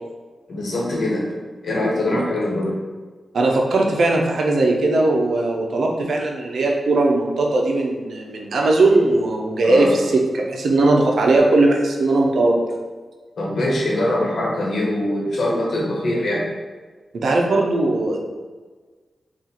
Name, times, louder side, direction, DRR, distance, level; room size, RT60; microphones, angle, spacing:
voice 1, 0.5-1.3 1.6-2.8 9.6-9.9 13.4-16.5, left 1 dB, 65° left, -4 dB, 1.2 m, -22 dB
voice 2, 3.3-12.6 17.1-18.2, right 2 dB, 75° right, 0 dB, 0.6 m, -19 dB
4.3 x 2.4 x 4.0 m, 1.4 s
wide cardioid pair, 145°, 0 cm